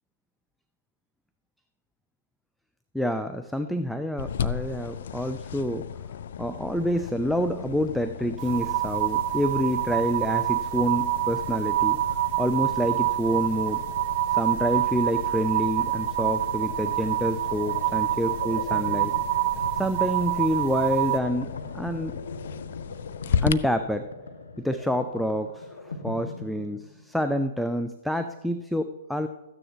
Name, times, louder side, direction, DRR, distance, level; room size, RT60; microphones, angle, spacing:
voice 1, 2.9-5.9 6.4-12.0 12.4-13.8 14.3-19.1 19.8-22.2 23.4-24.1 24.6-29.3, equal, ahead, 8 dB, 0.4 m, -28 dB
sound 1, 4.2-23.5, left 8 dB, 65° left, 0.4 m, -36 dB
sound 2, 8.4-21.2, right 15 dB, 40° right, 0.6 m, -27 dB
sound 3, 16.6-27.2, left 3 dB, 80° left, 1.0 m, -40 dB
13.5 x 9.6 x 3.0 m, 1.1 s
hypercardioid pair, 120°, 0 cm